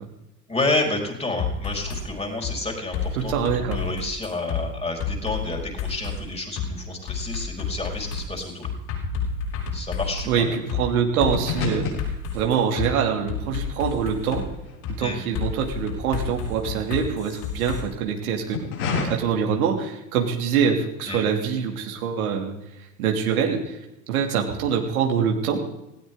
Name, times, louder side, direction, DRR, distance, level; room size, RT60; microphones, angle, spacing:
voice 1, 0.5-3.3 3.6-8.7 9.7-10.6 15.0-15.2 21.1-21.2, left 2 dB, 15° left, 2 dB, 4.7 m, -29 dB
sound 1, 1.4-2.0 2.4-2.6 2.9-4.6 5.0-6.2 6.6-6.7 7.1-10.3 10.7-10.8 11.2-12.9 13.3-14.4 14.8-15.0 15.3-17.8, left 7 dB, 45° left, 7.2 m, -30 dB
voice 2, 3.2-3.8 10.3-11.9 12.3-14.4 15.0-18.6 19.1-22.5 23.0-23.8 24.1-25.6, right 7 dB, 65° right, 2 dB, 2.9 m, -24 dB
sound 2, 9.0-15.6 15.9-17.7 18.3-19.0, left 4 dB, 70° left, 6.6 m, -33 dB
19.0 x 17.5 x 3.9 m, 0.92 s
figure-of-eight pair, 75°, 47 cm